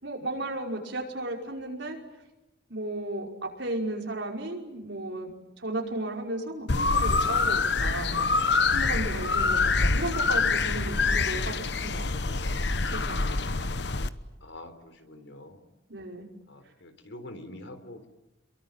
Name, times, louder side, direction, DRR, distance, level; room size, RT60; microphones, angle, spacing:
voice 1, 0.0-2.0 2.7-5.3 5.6-13.4 15.9-16.3, right 1 dB, 75° right, 1 dB, 5.5 m, -35 dB
sound 1, 6.7-14.1, left 4 dB, 65° left, 1.1 m, -25 dB
voice 2, 14.4-15.7 16.5-18.1, left 1 dB, 80° left, 9 dB, 3.7 m, -45 dB
28.5 x 23.0 x 9.0 m, 1.0 s
head